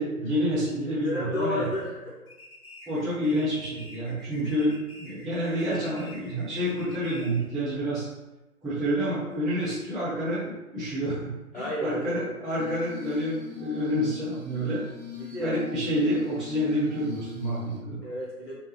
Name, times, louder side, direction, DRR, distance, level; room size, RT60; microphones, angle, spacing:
voice 1, 0.0-1.7 2.9-8.1 8.6-14.8 15.4-18.0, equal, ahead, -14 dB, 0.5 m, -28 dB
voice 2, 1.0-2.2 11.5-12.3 15.1-15.6 18.0-18.6, left 1 dB, 45° left, -8 dB, 1.0 m, -31 dB
sound 1, 2.3-7.5, left 1 dB, 75° left, 1.1 m, -48 dB
Glass, 12.6-17.8, left 8 dB, 40° right, 0.8 m, -42 dB
3.1 x 2.9 x 3.2 m, 1.0 s
figure-of-eight pair, 165°, 45 cm